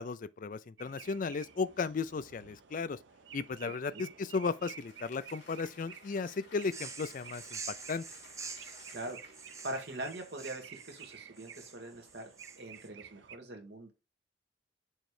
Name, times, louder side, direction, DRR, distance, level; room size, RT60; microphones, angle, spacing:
voice 1, 0.0-3.0 3.3-7.6 7.9-8.0, left 4 dB, 45° left, 0.4 m, -35 dB
sound 1, 0.8-13.4, right 7 dB, 80° right, 0.7 m, -53 dB
voice 2, 3.6-4.1 8.6-9.2 9.6-13.9, right 1 dB, 65° right, 1.7 m, -43 dB
Applause, 4.0-11.6, left 3 dB, 75° left, 3.3 m, -59 dB
sound 2, 6.6-12.9, right 5 dB, 15° right, 0.5 m, -47 dB
6.4 x 3.2 x 4.8 m
head